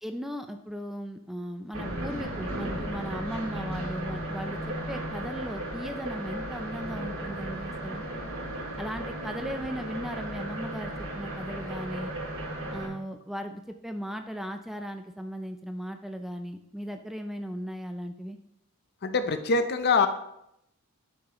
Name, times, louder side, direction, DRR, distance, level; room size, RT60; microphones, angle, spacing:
voice 1, 0.0-8.0 8.8-12.1 12.7-18.4, equal, ahead, 6 dB, 0.4 m, -37 dB
sound 1, 1.7-12.9, right 1 dB, 65° right, 2.3 m, -35 dB
voice 2, 19.0-20.1, left 4 dB, 50° left, 9 dB, 0.7 m, -24 dB
12.0 x 6.3 x 3.0 m, 0.81 s
head